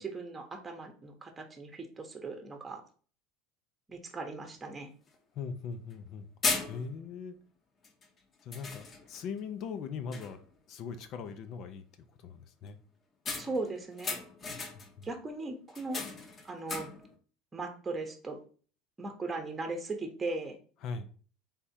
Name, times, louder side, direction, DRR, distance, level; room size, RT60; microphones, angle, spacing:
voice 1, 0.0-2.8 3.9-4.9 13.4-14.2 15.0-16.0 16.4-16.9 17.5-18.4 19.0-20.6, right 3 dB, 15° right, 1.0 m, -38 dB
sound 1, 4.6-4.7 5.1-5.2 5.9-6.1 6.4-7.1 7.8-8.1 8.5-9.3 9.7-9.8 10.1-10.5 13.3-15.0 15.7-17.1, left 4 dB, 30° left, 0.9 m, -37 dB
voice 2, 5.3-6.3 6.7-7.4 8.4-10.4 10.7-11.8 12.2-12.8 14.5-15.1 20.8-21.1, left 5 dB, 50° left, 0.6 m, -40 dB
3.6 x 3.4 x 4.3 m
supercardioid pair, 120°, 0 cm